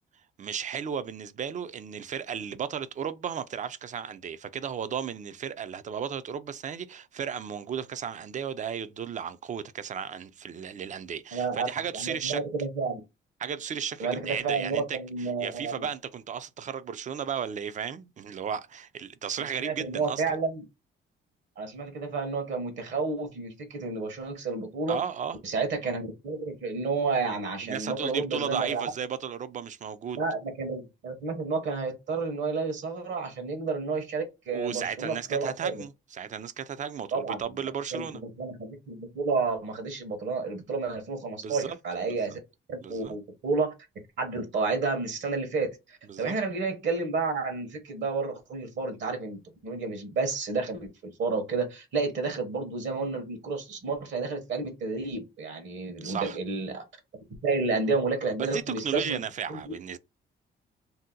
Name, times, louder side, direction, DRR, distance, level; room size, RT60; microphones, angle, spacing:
voice 1, 0.4-12.4 13.4-15.0 15.4-20.2 24.9-25.4 27.6-30.2 34.5-38.2 41.4-41.7 42.1-42.4 42.8-43.2 46.1-46.4 56.0-56.4 58.4-60.0, right 7 dB, 40° right, 0.4 m, -34 dB
voice 2, 11.3-11.7 11.9-13.0 14.0-15.9 19.6-20.6 21.6-25.0 25.4-28.8 30.2-35.8 37.1-37.4 37.9-38.1 38.4-42.4 42.7-43.7 44.2-56.8 57.4-59.2 59.5-59.6, right 4 dB, 70° right, 1.0 m, -30 dB
2.7 x 2.1 x 3.7 m
cardioid pair, 90°, 20 cm